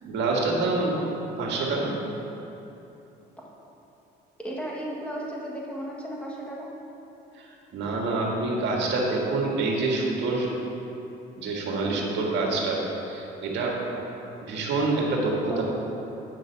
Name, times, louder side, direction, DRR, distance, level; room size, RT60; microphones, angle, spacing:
voice 1, 0.0-2.0 7.7-10.5 11.4-12.8 13.0-13.8 14.4-15.6, right 3 dB, 70° right, -2 dB, 1.8 m, -26 dB
voice 2, 4.4-6.7 11.8-12.0 15.5-15.6, right 1 dB, 5° left, -4 dB, 1.5 m, -34 dB
9.5 x 5.4 x 5.3 m, 2.9 s
cardioid pair, 125°, 19 cm